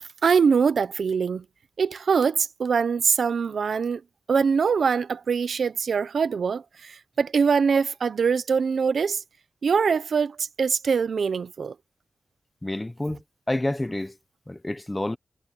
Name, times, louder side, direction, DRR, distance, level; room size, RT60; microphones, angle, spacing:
voice 1, 0.2-1.4 1.8-4.0 4.3-9.2 9.6-11.7, right 6 dB, 80° right, 0.8 m, -23 dB
voice 2, 12.6-13.2 13.5-14.1 14.5-15.2, left 1 dB, 20° left, 1.2 m, -28 dB
wide cardioid pair, 80°, 0 cm